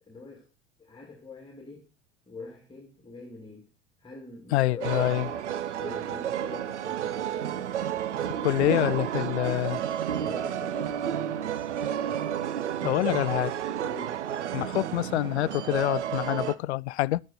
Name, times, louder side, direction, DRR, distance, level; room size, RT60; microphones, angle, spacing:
voice 1, 0.0-0.5 0.8-1.9 2.3-3.7 4.0-5.5 5.8-7.7 8.4-8.9 10.1-11.6 12.0-12.3 12.8-13.5 13.8-14.2, left 4 dB, 15° left, 2.5 m, -44 dB
voice 2, 4.5-5.3 8.4-9.8 12.8-13.5 14.5-17.2, left 16 dB, 65° left, 0.5 m, -26 dB
sound 1, 4.8-16.6, right 10 dB, 75° right, 0.9 m, -31 dB
11.0 x 10.0 x 4.3 m
figure-of-eight pair, 75°, 35 cm